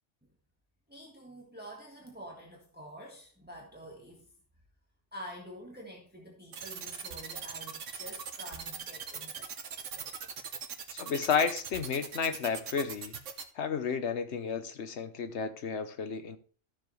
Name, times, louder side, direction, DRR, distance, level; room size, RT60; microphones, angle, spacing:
voice 1, 0.9-4.3 5.1-10.1, equal, 10° right, 1.5 m, -48 dB
sound 1, 6.5-13.4, right 6 dB, 85° right, 1.4 m, -40 dB
voice 2, 10.9-13.1 13.5-16.4, left 6 dB, 65° left, 1.2 m, -32 dB
13.5 x 7.0 x 3.2 m
omnidirectional pair, 1.2 m